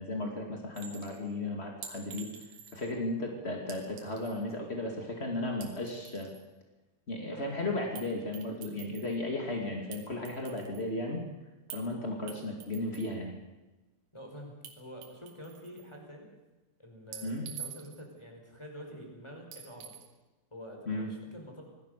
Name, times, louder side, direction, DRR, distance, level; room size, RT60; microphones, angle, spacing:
voice 1, 0.0-2.3 2.7-6.3 7.1-11.2 11.7-13.3 17.2-17.5 20.8-21.1, left 2 dB, 50° left, 1 dB, 0.7 m, -35 dB
Chink clink, 0.8-1.2 1.8-2.9 3.7-4.4 5.5-6.4 8.0-8.1 8.3-9.2 9.9-10.9 11.7-11.9 12.3-13.1 14.6-14.7 15.0-15.9 17.1-18.1 19.5-20.1, right 8 dB, 65° right, 4.7 m, -47 dB
voice 2, 14.1-16.3 16.8-17.3 17.6-20.0 20.5-21.6, equal, 5° left, 2 dB, 4.6 m, -47 dB
26.0 x 19.0 x 6.8 m, 1.1 s
omnidirectional pair, 5.7 m